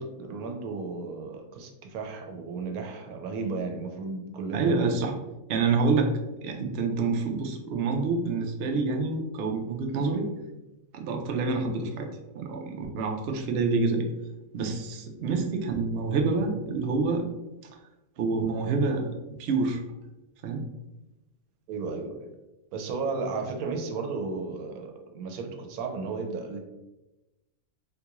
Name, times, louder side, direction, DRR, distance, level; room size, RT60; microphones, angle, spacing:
voice 1, 0.0-5.0 21.7-22.3 22.7-26.6, right 4 dB, 90° right, 5 dB, 1.1 m, -34 dB
voice 2, 4.5-5.1 5.5-6.1 6.4-10.3 10.9-12.1 12.3-14.1 14.5-17.3 18.2-19.1 19.4-19.8 20.4-20.7, right 4 dB, 65° right, 3 dB, 0.6 m, -27 dB
3.7 x 2.3 x 2.8 m, 1.0 s
omnidirectional pair, 1.5 m